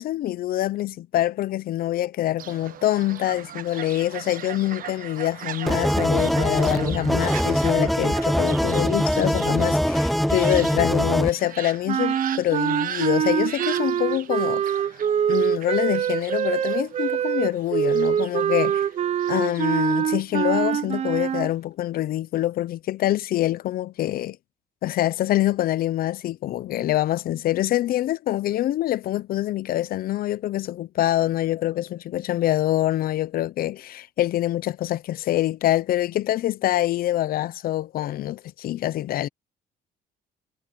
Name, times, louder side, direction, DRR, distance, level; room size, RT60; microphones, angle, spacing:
voice 1, 0.0-14.9 15.3-18.9 19.3-24.4 24.8-39.3, left 14 dB, 60° left, 0.7 m, -25 dB
Fowl, 2.4-20.0, right 11 dB, 55° right, 1.2 m, -39 dB
sound 1, 5.7-11.3, equal, ahead, 0.6 m, -22 dB
sound 2, 11.9-21.5, right 9 dB, 40° right, 0.6 m, -24 dB
cardioid pair, 110°, 17 cm